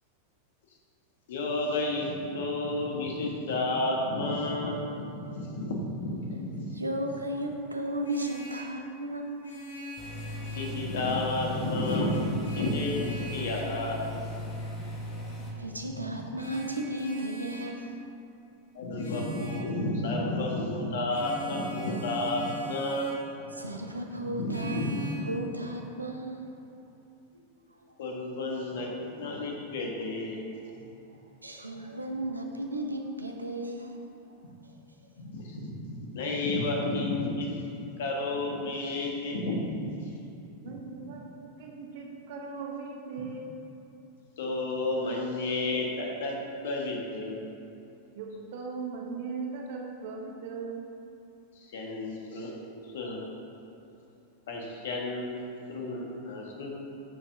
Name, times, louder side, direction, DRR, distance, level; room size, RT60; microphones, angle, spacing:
voice 1, 1.3-6.7 10.5-14.5 16.1-16.2 18.7-23.1 24.3-25.0 28.0-30.4 35.2-37.6 38.0-39.9 41.1-41.2 44.4-46.3 46.6-47.4 51.5-52.5 52.8-53.3 54.5-55.4 55.7-56.7, left 2 dB, 60° left, -1 dB, 1.4 m, -31 dB
voice 2, 6.7-9.4 14.8-14.9 15.5-18.0 19.1-19.2 23.5-26.4 27.3-27.9 31.4-34.3 34.6-34.8, right 1 dB, 80° right, 3 dB, 0.7 m, -35 dB
Vehicle horn car horn honking, 7.8-8.8 9.4-10.9 11.8-13.8 16.4-17.8 19.0-19.7 21.1-23.3 24.5-25.1, right 1 dB, 75° left, 1.4 m, -42 dB
sound 1, 10.0-15.5, left 1 dB, 30° left, 1.9 m, -38 dB
voice 3, 40.6-43.5 48.2-50.8, right 4 dB, 50° right, 1 dB, 0.8 m, -38 dB
10.5 x 7.1 x 2.7 m, 2.7 s
figure-of-eight pair, 90°, 0 cm